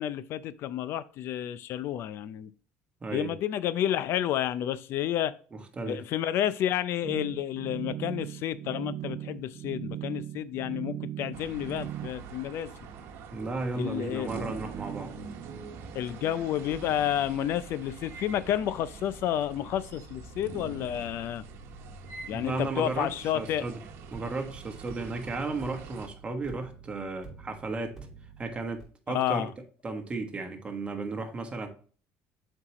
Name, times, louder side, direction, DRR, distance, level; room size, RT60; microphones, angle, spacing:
voice 1, 0.0-2.5 3.1-5.3 5.9-12.7 13.8-14.3 15.9-21.4 22.3-23.6 29.1-29.5, left 11 dB, 60° left, 0.4 m, -30 dB
voice 2, 3.0-3.3 5.5-6.0 13.3-15.1 22.3-23.8 24.1-28.0 28.4-29.5 29.8-31.7, right 3 dB, 25° right, 1.2 m, -34 dB
sound 1, 7.0-12.1, right 12 dB, 45° right, 0.4 m, -38 dB
sound 2, 11.3-26.1, right 4 dB, 65° right, 1.1 m, -44 dB
sound 3, 16.6-21.7 24.1-28.8, right 5 dB, 10° right, 2.9 m, -51 dB
7.5 x 4.6 x 3.0 m
cardioid pair, 115°, 5 cm